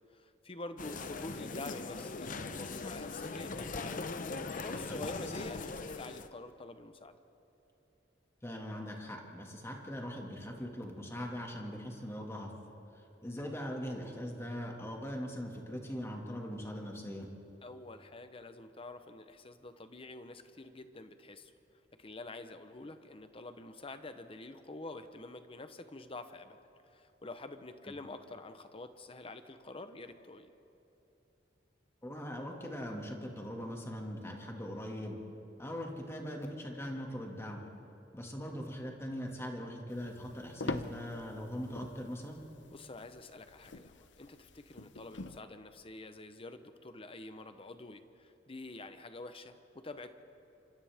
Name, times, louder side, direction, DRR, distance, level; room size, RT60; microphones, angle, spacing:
voice 1, 0.1-4.1 4.5-7.2 17.6-21.5 22.0-26.6 26.9-30.5 42.7-50.1, left 2 dB, 30° left, 9 dB, 1.0 m, -47 dB
sound 1, 0.8-6.3, left 3 dB, 50° left, 0.8 m, -40 dB
voice 2, 8.4-12.5 12.9-17.3 32.0-35.2 35.6-37.6 38.1-42.4, equal, 15° left, 0 dB, 2.2 m, -41 dB
sound 2, 39.9-45.4, left 3 dB, 80° left, 0.8 m, -44 dB
28.0 x 25.5 x 3.6 m, 2.8 s
head